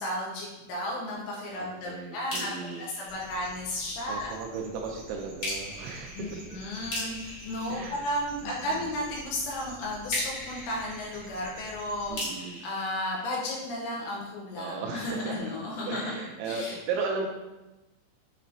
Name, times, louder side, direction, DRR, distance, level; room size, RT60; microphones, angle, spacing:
voice 1, 0.0-4.3 6.1-12.2 12.6-16.1 16.4-16.8, left 1 dB, 75° left, -3 dB, 2.8 m, -34 dB
voice 2, 1.6-2.9 4.1-6.6 7.7-8.0 8.4-8.9 12.1-12.6 14.6-15.4 15.9-17.3, right 4 dB, 80° right, 0 dB, 2.7 m, -36 dB
sound 1, 2.3-4.0 5.4-8.7 10.1-14.0, left 1 dB, 45° left, 1.6 m, -39 dB
sound 2, 3.1-12.1, right 1 dB, 65° right, 1.6 m, -49 dB
8.4 x 3.0 x 3.9 m, 1.0 s
omnidirectional pair, 5.6 m